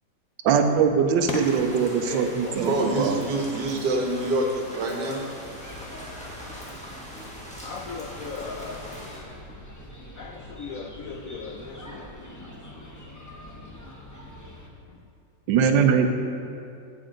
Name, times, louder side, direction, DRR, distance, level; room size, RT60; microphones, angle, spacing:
voice 1, 0.4-3.2 15.5-16.1, right 6 dB, 85° right, 6 dB, 1.4 m, -21 dB
sound 1, 1.4-9.2, equal, 5° left, 1.3 m, -41 dB
voice 2, 2.0-2.6 7.6-8.8 10.2-12.1 14.9-15.0, left 5 dB, 70° left, 1 dB, 0.8 m, -36 dB
voice 3, 2.5-5.2, right 1 dB, 70° right, 1 dB, 1.7 m, -26 dB
sound 2, 5.4-14.7, left 1 dB, 30° left, 0.3 m, -44 dB
16.0 x 5.4 x 3.8 m, 2.5 s
omnidirectional pair, 2.0 m